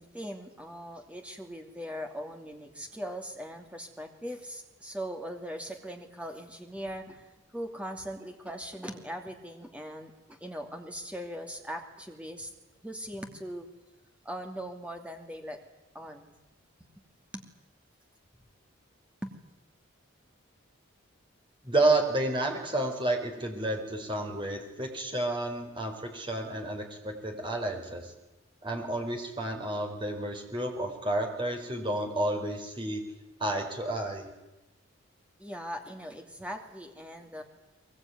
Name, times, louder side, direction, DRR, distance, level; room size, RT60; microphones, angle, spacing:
voice 1, 0.0-12.5 12.8-13.7 14.2-15.6 15.9-16.4 16.8-16.9 17.3-17.4 19.2-19.3 35.4-37.4, equal, 5° right, 4 dB, 2.6 m, -40 dB
voice 2, 21.6-28.1 28.6-33.0 33.4-34.3, right 2 dB, 25° right, 3 dB, 4.5 m, -30 dB
22.0 x 22.0 x 9.5 m, 1.0 s
head